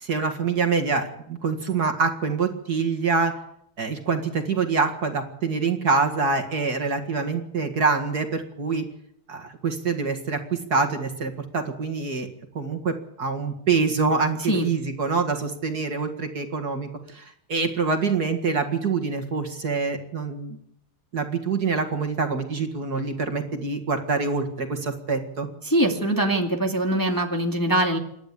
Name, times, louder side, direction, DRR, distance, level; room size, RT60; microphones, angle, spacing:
voice 1, 0.0-3.3 3.8-8.9 9.3-12.3 12.5-16.9 17.1-20.6 21.1-25.5, right 4 dB, 50° right, 5 dB, 2.4 m, -25 dB
voice 2, 25.7-28.0, right 1 dB, 10° left, 2 dB, 2.0 m, -22 dB
27.5 x 12.0 x 8.4 m, 0.74 s
omnidirectional pair, 2.3 m